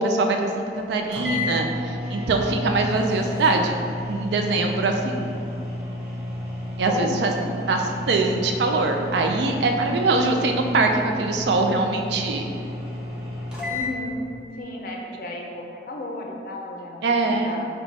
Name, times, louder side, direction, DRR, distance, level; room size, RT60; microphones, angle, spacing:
voice 1, 0.0-3.8 4.1-5.4 6.8-7.3 7.7-12.5 17.0-17.6, right 3 dB, 70° right, 3 dB, 0.4 m, -23 dB
sound 1, 0.8-0.9 1.1-13.9, left 1 dB, 5° right, 0.6 m, -32 dB
voice 2, 6.9-7.4 13.7-14.2 14.5-17.7, left 2 dB, 50° left, 0 dB, 0.4 m, -33 dB
4.0 x 2.2 x 4.5 m, 2.6 s
head